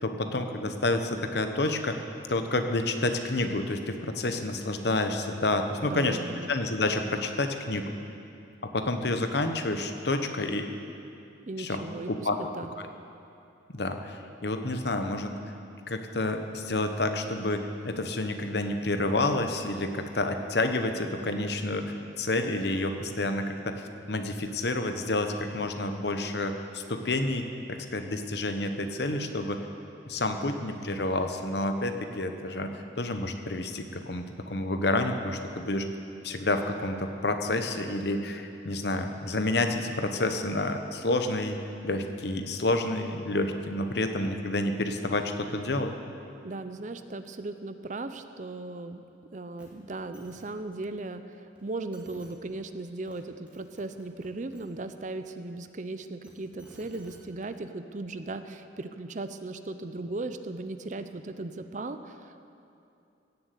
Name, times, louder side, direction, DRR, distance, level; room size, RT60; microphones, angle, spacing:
voice 1, 0.0-2.0 2.3-6.2 6.5-7.9 8.6-10.7 11.6-11.8 12.1-12.4 13.7-15.6 15.9-29.6 30.0-32.7 33.0-35.9 36.2-41.6 41.8-45.9, left 2 dB, 60° left, 6 dB, 1.0 m, -29 dB
voice 2, 5.8-6.5 11.4-12.7 46.4-49.0 49.3-62.4, right 2 dB, 40° right, 10 dB, 0.6 m, -37 dB
sound 1, 49.6-49.7 50.0-50.5 51.6-51.7 51.9-52.3 52.9-53.2 53.5-54.6 56.0-57.2 58.2-58.3, equal, 5° right, 2.3 m, -55 dB
16.0 x 7.7 x 8.3 m, 2.7 s
head